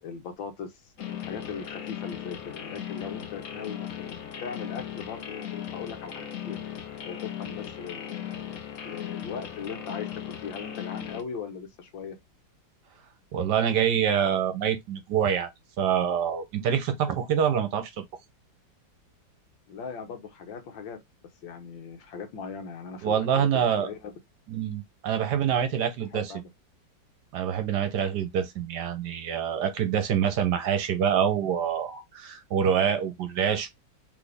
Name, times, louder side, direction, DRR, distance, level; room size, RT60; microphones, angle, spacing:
voice 1, 0.0-6.6 7.0-8.4 8.8-12.2 19.7-21.0 21.4-24.1 26.1-26.5, left 6 dB, 75° left, 1.7 m, -39 dB
sound 1, 1.0-11.2, left 10 dB, 55° left, 0.9 m, -37 dB
voice 2, 13.3-15.5 15.8-18.0 23.0-23.9 24.5-26.3 27.3-33.7, right 8 dB, 65° right, 1.2 m, -26 dB
4.1 x 3.6 x 3.3 m
omnidirectional pair, 2.1 m